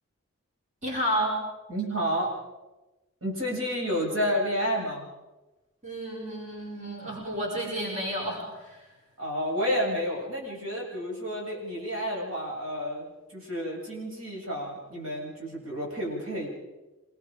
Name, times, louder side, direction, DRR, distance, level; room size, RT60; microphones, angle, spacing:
voice 1, 0.8-1.4 5.8-8.9, equal, 35° right, -3 dB, 5.5 m, -31 dB
voice 2, 1.7-2.3 3.2-5.1 9.2-16.5, equal, 75° right, -3 dB, 7.7 m, -30 dB
26.5 x 21.0 x 5.1 m, 1.1 s
head